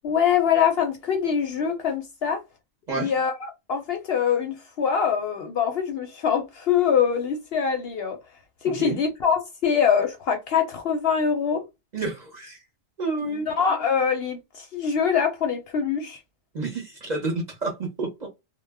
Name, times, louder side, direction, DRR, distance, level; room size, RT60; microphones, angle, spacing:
voice 1, 0.0-2.4 2.9-8.2 8.6-11.6 13.3-16.2, left 7 dB, 65° left, 0.7 m, -24 dB
voice 2, 8.6-9.0 11.9-12.6 13.0-13.5 16.5-18.3, right 3 dB, 45° right, 0.7 m, -29 dB
2.2 x 2.0 x 3.3 m
omnidirectional pair, 1.3 m